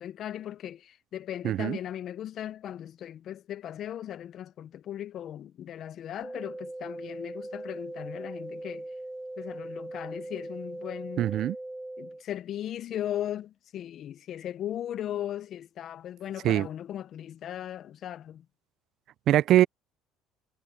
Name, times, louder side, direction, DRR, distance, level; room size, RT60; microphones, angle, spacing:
voice 1, 0.0-8.9 9.4-11.3 12.0-18.4, left 11 dB, 55° left, 0.8 m, -37 dB
voice 2, 1.4-1.8 11.2-11.6 16.4-16.7 19.3-19.7, right 13 dB, 60° right, 0.3 m, -22 dB
sound 1, 6.2-12.2, right 1 dB, 10° right, 0.6 m, -40 dB
supercardioid pair, 90°, 0 cm